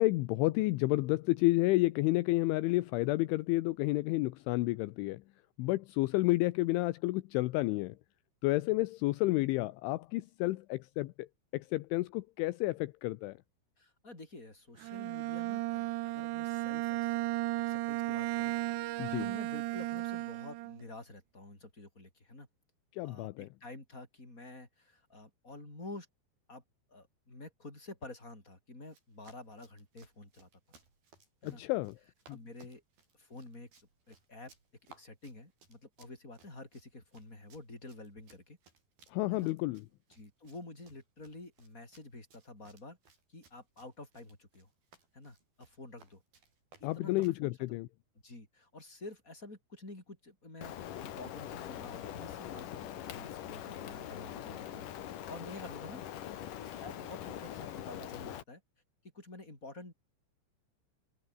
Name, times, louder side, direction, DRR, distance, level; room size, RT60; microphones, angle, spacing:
voice 1, 0.0-5.2 5.6-8.0 8.4-11.3 11.5-13.4 19.0-19.2 22.9-23.5 31.4-32.0 32.3-32.4 39.1-39.8 46.8-47.9, left 20 dB, 80° left, 3.2 m, -30 dB
voice 2, 13.8-17.2 17.7-18.5 19.2-22.5 23.0-26.1 26.5-26.6 26.9-30.5 31.4-31.6 32.3-32.8 33.2-33.7 34.1-34.5 35.0-38.6 39.3-39.5 40.1-43.0 43.3-44.7 45.1-46.2 46.8-47.6 48.2-56.0 56.6-58.6 59.1-59.9, left 2 dB, 15° left, 7.4 m, -49 dB
Bowed string instrument, 14.8-20.9, right 17 dB, 75° right, 2.8 m, -35 dB
Run, 28.8-47.4, right 4 dB, 50° right, 8.6 m, -64 dB
Rain, 50.6-58.4, left 11 dB, 60° left, 2.5 m, -43 dB
omnidirectional pair, 5.6 m